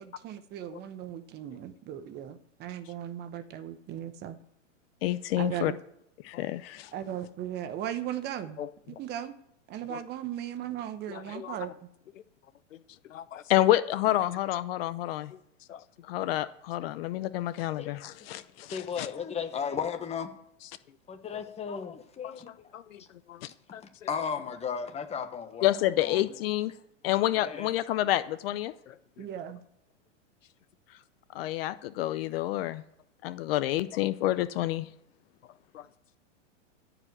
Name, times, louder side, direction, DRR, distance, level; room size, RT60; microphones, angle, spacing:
voice 1, 0.0-4.4 5.4-5.8 6.9-8.6 8.9-9.3 9.7-11.7 29.2-29.6, right 10 dB, 30° right, 0.9 m, -37 dB
voice 2, 5.0-5.7 6.2-6.9 13.5-15.3 16.1-19.1 25.6-26.7 27.0-28.7 31.3-32.8 33.2-34.9, left 14 dB, 50° left, 0.7 m, -28 dB
voice 3, 11.1-11.5 13.1-13.4 15.7-15.8 22.2-22.3 22.7-23.0 23.3-23.5 23.7-23.8 28.9-29.3 35.7-35.8, left 10 dB, 90° left, 0.8 m, -43 dB
voice 4, 18.7-20.3 21.1-22.7 24.1-25.7 26.0-26.2 27.2-27.7, left 7 dB, 15° left, 1.2 m, -35 dB
14.5 x 5.0 x 7.9 m
hypercardioid pair, 130°, 37 cm